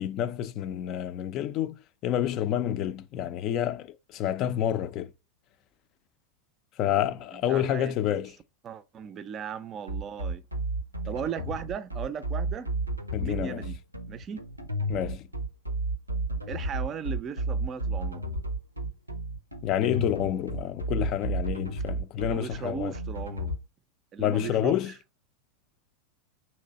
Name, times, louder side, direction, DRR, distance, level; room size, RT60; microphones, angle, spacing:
voice 1, 0.0-5.1 6.8-8.3 13.1-13.6 14.9-15.3 19.6-22.9 24.2-24.9, left 11 dB, 40° left, 0.4 m, -28 dB
voice 2, 7.3-8.2 8.6-10.4 11.1-12.7 13.2-13.8 14.1-14.4 16.5-18.2 22.3-23.5 24.1-24.9, right 7 dB, 30° right, 0.4 m, -37 dB
sound 1, 9.9-23.6, right 1 dB, 90° right, 0.6 m, -32 dB
3.3 x 3.0 x 4.0 m
figure-of-eight pair, 90°, 0 cm